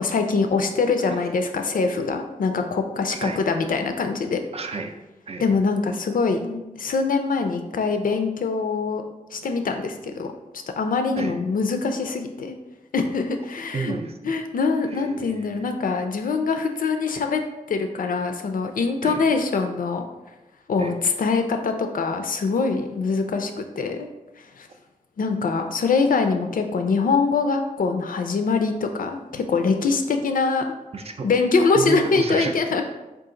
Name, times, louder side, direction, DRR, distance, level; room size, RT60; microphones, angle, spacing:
voice 1, 0.0-4.4 5.4-9.0 9.3-10.3 10.8-12.6 12.9-13.9 14.2-17.4 17.7-20.1 20.7-23.5 23.8-24.1 24.4-24.7 25.2-30.6 31.2-32.9, left 4 dB, 80° left, 6 dB, 0.4 m, -23 dB
voice 2, 3.1-3.4 4.5-4.9 5.3-5.4 11.2-11.4 13.7-14.3 14.8-15.6 19.0-19.3 20.8-21.0 30.9-31.3 31.7-32.6, right 3 dB, 45° right, 5 dB, 0.4 m, -31 dB
3.9 x 2.4 x 3.7 m, 1.0 s
wide cardioid pair, 120°, 14 cm